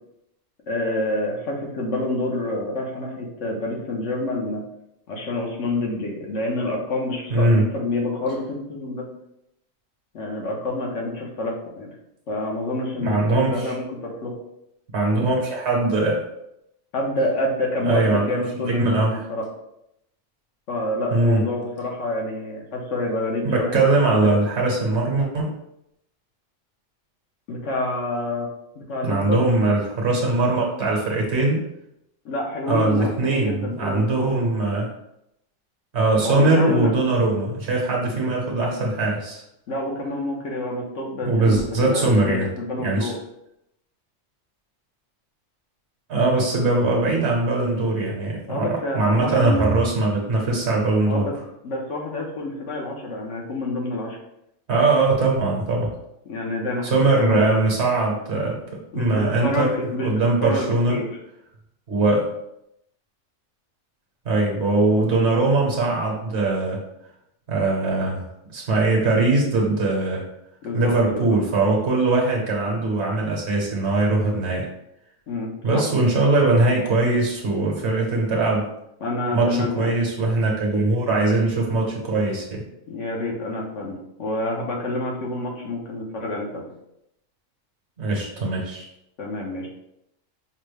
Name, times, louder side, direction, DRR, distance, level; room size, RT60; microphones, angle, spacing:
voice 1, 0.7-4.6 5.1-8.4 8.7-9.0 10.1-11.9 12.3-14.3 16.9-19.4 20.7-24.3 27.5-28.5 28.7-29.4 32.2-34.3 36.2-36.9 39.7-43.2 48.5-49.6 51.1-51.3 51.6-54.2 56.2-57.4 58.9-61.1 70.6-71.4 75.3-75.8 79.0-79.9 82.9-83.9 84.2-86.7 89.2-89.7, left 2 dB, 70° left, -1 dB, 1.2 m, -28 dB
voice 2, 7.3-7.7 13.0-13.7 14.9-16.2 17.8-19.2 21.1-21.4 23.4-25.5 29.0-31.6 32.7-34.9 35.9-39.4 41.2-42.5 42.8-43.1 46.1-51.3 54.7-55.9 56.8-59.7 60.0-61.0 61.9-62.3 64.2-66.8 67.5-70.2 70.7-74.7 75.6-78.7 79.3-82.6 88.0-88.8, right 2 dB, 60° right, -1 dB, 1.2 m, -21 dB
5.4 x 2.1 x 3.3 m, 0.81 s
omnidirectional pair, 1.3 m